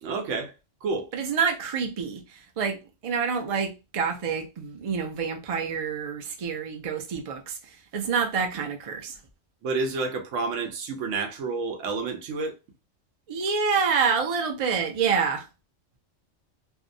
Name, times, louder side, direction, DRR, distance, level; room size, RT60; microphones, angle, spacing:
voice 1, 0.0-0.5 0.8-1.1 9.6-12.6, right 4 dB, 80° right, 1.0 m, -29 dB
voice 2, 1.1-9.2 13.3-15.5, right 6 dB, 60° right, 0.3 m, -27 dB
2.6 x 2.2 x 2.5 m
omnidirectional pair, 1.3 m